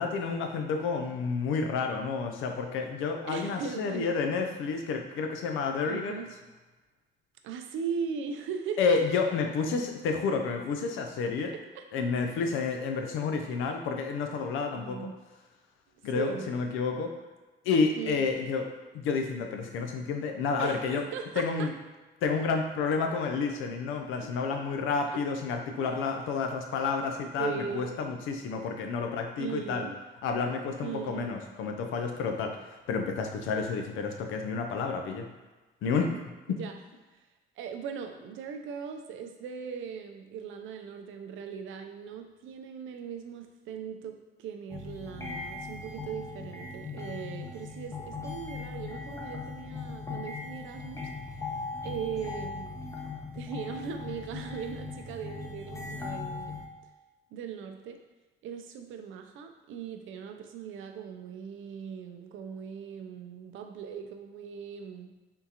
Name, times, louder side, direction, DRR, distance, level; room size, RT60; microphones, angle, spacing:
voice 1, 0.0-6.3 8.8-11.5 11.9-15.1 16.0-17.1 17.6-18.7 18.9-21.0 21.4-21.7 22.2-29.9 30.2-35.3 35.8-36.2 36.5-36.6, left 5 dB, 90° left, 4 dB, 0.5 m, -30 dB
voice 2, 3.3-4.1 5.8-6.4 7.4-9.0 11.7-12.1 13.4-13.6 14.7-15.2 16.1-16.5 18.0-18.3 20.6-21.7 24.2-24.3 25.1-25.2 25.8-26.1 27.4-27.9 29.4-30.0 30.8-31.3 36.5-36.7 37.1-37.3 37.6-51.1 51.8-52.8 53.3-56.6 57.3-58.0 58.4-65.1, right 7 dB, 80° right, 5 dB, 0.4 m, -39 dB
sound 1, 44.7-56.7, left 4 dB, 15° left, 0.6 m, -39 dB
3.6 x 2.4 x 2.8 m, 1.2 s
cardioid pair, 90°, 20 cm